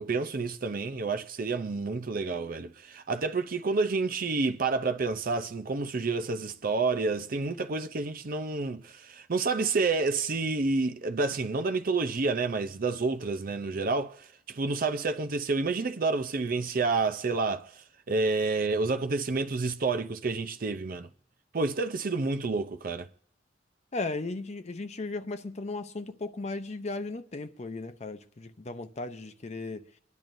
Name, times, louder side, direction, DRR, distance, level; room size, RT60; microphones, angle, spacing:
voice 1, 0.0-17.7 18.1-21.1 21.5-23.1, right 3 dB, 50° right, 0.6 m, -29 dB
voice 2, 23.9-29.9, left 3 dB, 35° left, 0.6 m, -36 dB
25.0 x 10.5 x 2.6 m
head